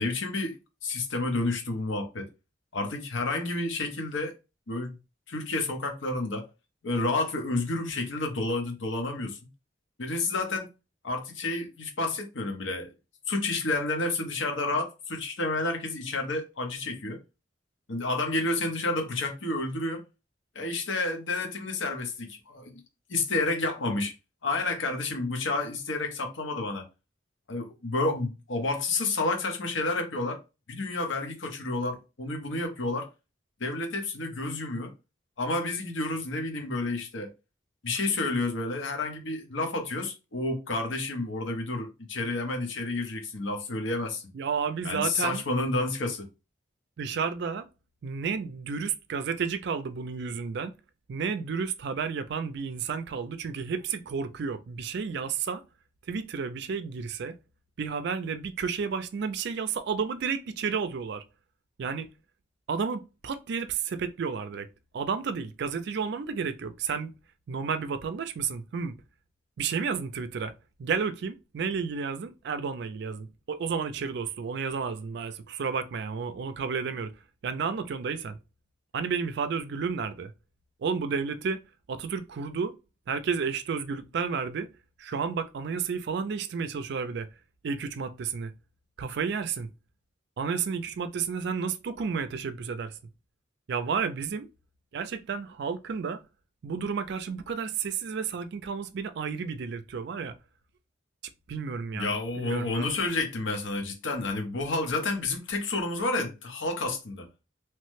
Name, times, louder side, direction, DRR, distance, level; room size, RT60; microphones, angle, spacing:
voice 1, 0.0-2.3 2.7-4.3 4.7-5.0 5.3-6.5 6.8-9.4 10.0-10.7 11.0-12.9 13.3-17.2 17.9-20.0 20.5-22.8 23.1-24.1 24.4-26.8 27.5-30.4 30.7-33.1 33.6-34.9 35.4-37.3 37.8-44.2 44.8-46.3 101.9-107.3, left 2 dB, 90° left, 0.9 m, -30 dB
voice 2, 44.3-45.4 47.0-47.7 48.0-50.7 51.1-55.6 56.1-57.3 57.8-61.2 61.8-62.1 62.7-64.7 64.9-67.1 67.5-68.9 69.6-70.5 70.8-77.1 77.4-78.4 78.9-80.3 80.8-81.6 81.9-82.7 83.1-84.7 85.0-87.3 87.6-88.5 89.0-89.7 90.4-93.0 93.7-94.5 94.9-96.2 96.6-100.3 101.5-102.9, right 6 dB, 60° right, 0.4 m, -31 dB
3.0 x 2.1 x 3.1 m
head